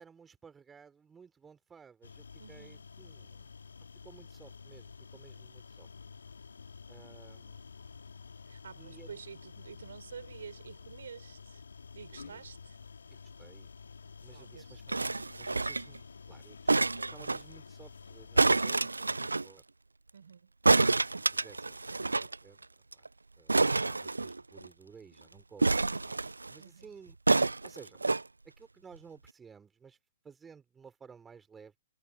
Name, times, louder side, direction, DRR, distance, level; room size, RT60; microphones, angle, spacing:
voice 1, 0.0-3.5 4.0-5.9 6.9-7.7 8.8-9.1 12.2-12.4 13.1-13.7 14.2-19.6 20.7-22.6 22.9-23.0 23.4-27.2 27.6-28.0 28.4-30.0 30.2-31.7, right 6 dB, 10° right, 4.4 m, -56 dB
sound 1, 2.0-18.6, left 5 dB, 65° left, 2.4 m, -50 dB
voice 2, 2.4-2.8 8.5-11.6 11.9-12.8 14.3-14.8 20.1-20.5 26.6-26.9, right 7 dB, 60° right, 5.4 m, -49 dB
sound 2, 14.9-16.0 16.7-17.4 18.4-19.5 20.7-22.4 22.6-22.7 22.9-23.1 23.5-24.7 25.6-26.5 27.3-28.2 29.0-29.1, right 3 dB, 75° right, 0.7 m, -28 dB
figure-of-eight pair, 115°, 0 cm